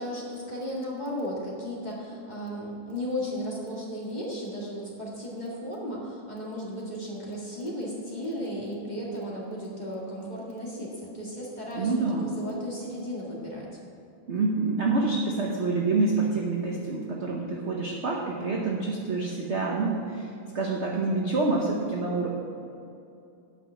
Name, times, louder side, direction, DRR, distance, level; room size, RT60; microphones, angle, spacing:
voice 1, 0.0-11.9 12.2-13.7, equal, 20° left, -5 dB, 1.9 m, -35 dB
voice 2, 11.8-12.3 14.3-20.3 20.5-22.3, right 3 dB, 45° right, -2 dB, 0.9 m, -27 dB
8.8 x 5.9 x 8.3 m, 2.6 s
omnidirectional pair, 2.2 m